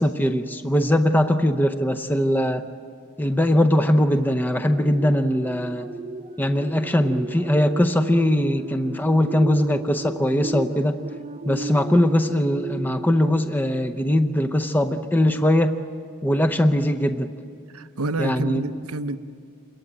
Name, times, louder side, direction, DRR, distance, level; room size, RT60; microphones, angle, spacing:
voice 1, 0.0-2.6 3.2-5.9 6.4-11.0 11.5-15.8 16.2-17.3 18.2-18.6, left 1 dB, 10° left, 6 dB, 0.7 m, -21 dB
sound 1, 4.5-14.4 14.9-15.1, right 2 dB, 30° right, 0.9 m, -36 dB
voice 2, 17.7-19.2, right 2 dB, 80° right, 10 dB, 0.9 m, -28 dB
28.0 x 22.0 x 8.9 m, 2.4 s
head